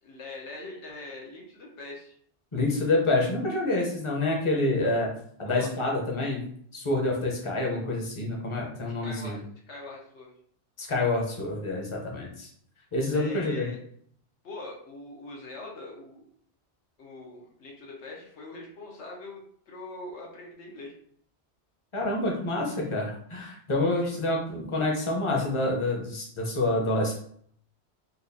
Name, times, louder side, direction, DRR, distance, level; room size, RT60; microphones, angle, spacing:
voice 1, 0.0-2.2 5.5-5.7 9.0-10.3 13.1-13.8 14.4-16.3 17.0-20.9 24.0-24.2, left 2 dB, 80° left, -1 dB, 1.2 m, -42 dB
voice 2, 2.5-5.1 5.4-6.4 6.7-9.4 10.8-12.5 12.9-13.7 21.9-27.1, left 2 dB, 30° left, 0 dB, 0.7 m, -27 dB
4.1 x 2.4 x 2.6 m, 0.62 s
omnidirectional pair, 1.2 m